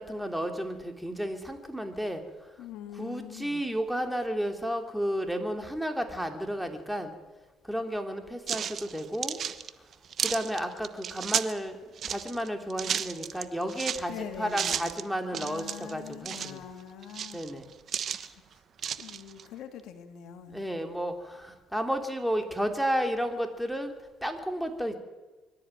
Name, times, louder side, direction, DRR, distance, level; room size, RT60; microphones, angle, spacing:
voice 1, 0.0-2.2 2.9-7.1 7.6-9.4 10.2-11.8 12.1-16.6 17.3-17.6 20.5-23.9 24.2-25.0, equal, ahead, 5 dB, 3.2 m, -32 dB
voice 2, 2.6-3.6 14.1-14.9 15.3-17.4 19.0-20.7, left 9 dB, 75° left, 7 dB, 2.6 m, -43 dB
sound 1, 8.5-11.6 12.0-14.0 14.5-15.0 15.3-16.6 17.0-18.3 18.8-19.4, right 8 dB, 55° right, 1.1 m, -33 dB
23.5 x 13.5 x 9.3 m, 1.2 s
supercardioid pair, 85°, 0 cm